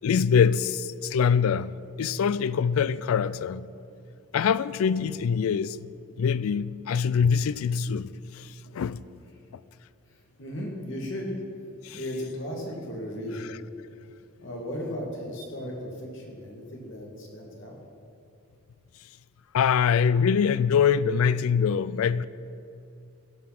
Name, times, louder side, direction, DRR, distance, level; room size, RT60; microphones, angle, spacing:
voice 1, 0.0-1.7 2.0-3.7 4.3-5.9 6.2-9.0 11.8-12.0 19.5-22.3, left 7 dB, 80° left, 0.3 m, -24 dB
voice 2, 10.1-11.4 11.9-13.5 14.4-17.8, equal, 60° left, 2.2 m, -36 dB
16.0 x 5.8 x 5.9 m
head